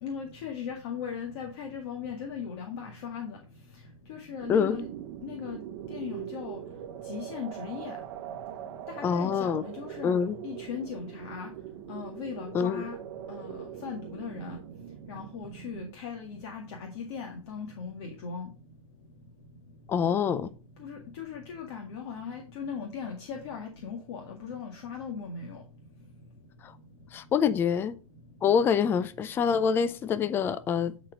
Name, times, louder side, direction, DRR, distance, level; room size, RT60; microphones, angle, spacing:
voice 1, 0.0-3.4 4.1-4.8 5.2-5.6 5.9-6.6 7.1-8.0 9.0-10.1 10.4-11.5 11.9-13.0 13.3-14.6 15.1-18.5 20.8-25.6, left 6 dB, 50° left, 1.9 m, -38 dB
sound 1, 4.4-15.9, right 11 dB, 45° right, 1.0 m, -42 dB
voice 2, 9.0-9.6 10.0-10.4 12.5-12.8 19.9-20.5 26.6-26.7 27.1-28.0 28.4-30.9, left 7 dB, 10° left, 0.4 m, -26 dB
10.0 x 4.3 x 5.1 m
hypercardioid pair, 145°, 18 cm